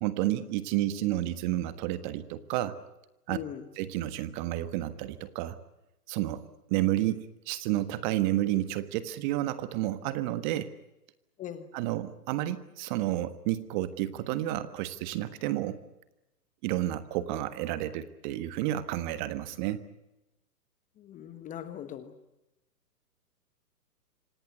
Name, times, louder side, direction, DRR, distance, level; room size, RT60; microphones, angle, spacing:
voice 1, 0.0-2.8 3.3-3.4 3.7-5.6 6.1-6.4 6.7-10.7 11.7-15.8 16.6-19.8, right 14 dB, 30° right, 13 dB, 1.5 m, -30 dB
voice 2, 3.3-3.6 11.4-11.7 21.0-22.1, left 10 dB, 15° left, 12 dB, 1.3 m, -40 dB
26.5 x 18.0 x 9.7 m, 0.96 s
hypercardioid pair, 135°, 48 cm